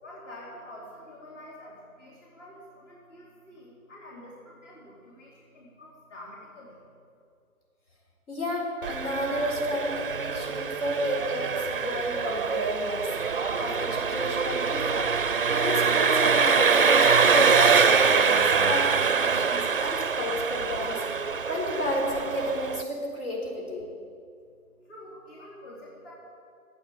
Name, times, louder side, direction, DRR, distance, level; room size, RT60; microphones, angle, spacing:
voice 1, 0.0-6.8 24.8-26.1, left 1 dB, 50° left, -4 dB, 4.0 m, -47 dB
voice 2, 8.3-13.1 13.6-15.1 15.5-23.8, equal, 75° left, -2 dB, 4.4 m, -31 dB
Engine, 8.8-22.8, right 6 dB, 40° right, 0.4 m, -24 dB
12.5 x 8.6 x 8.8 m, 2.4 s
hypercardioid pair, 155°, 45 cm